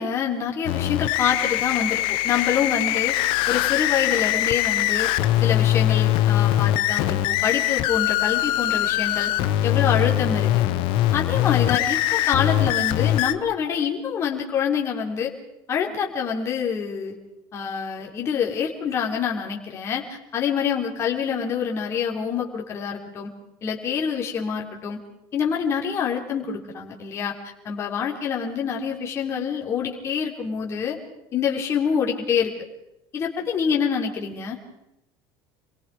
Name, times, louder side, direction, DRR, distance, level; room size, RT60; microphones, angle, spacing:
voice 1, 0.0-3.2 3.5-5.1 5.4-9.3 9.6-10.7 11.1-15.3 15.7-17.2 17.5-23.3 23.6-25.0 25.3-27.3 27.6-31.0 31.3-32.5 33.1-34.6, left 7 dB, 25° left, 0 dB, 4.0 m, -26 dB
sound 1, 0.7-13.3, left 14 dB, 50° left, 1.2 m, -22 dB
29.0 x 23.0 x 5.1 m, 0.85 s
cardioid pair, 180°, 11 cm